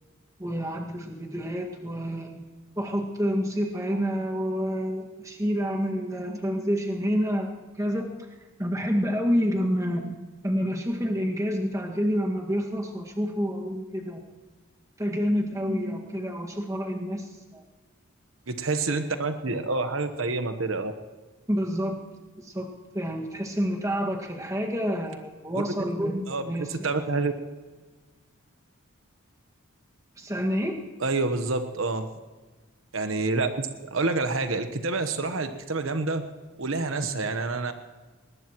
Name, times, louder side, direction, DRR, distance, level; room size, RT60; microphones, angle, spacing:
voice 1, 0.4-2.5 2.8-8.3 8.6-10.2 10.4-14.2 15.0-17.6 21.5-22.0 22.4-26.9 30.2-30.8, equal, 15° right, 1 dB, 1.8 m, -28 dB
voice 2, 18.5-20.9 25.5-25.6 26.3-27.3 31.0-32.1 32.9-36.2 36.6-37.7, right 3 dB, 70° right, 7 dB, 1.1 m, -28 dB
21.0 x 20.0 x 3.1 m, 1.3 s
head